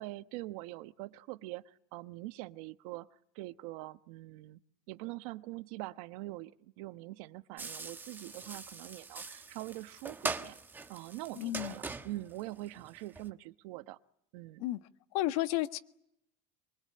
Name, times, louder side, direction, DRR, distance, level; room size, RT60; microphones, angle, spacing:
voice 1, 0.0-4.6 4.9-10.6 10.9-14.0 14.3-14.6, right 18 dB, 65° right, 1.2 m, -44 dB
sound 1, 7.6-13.3, right 4 dB, 10° right, 1.2 m, -42 dB
voice 2, 11.4-11.7 14.6-14.8 15.1-15.8, left 16 dB, 65° left, 1.5 m, -32 dB
24.0 x 24.0 x 8.7 m
cardioid pair, 170°, 20 cm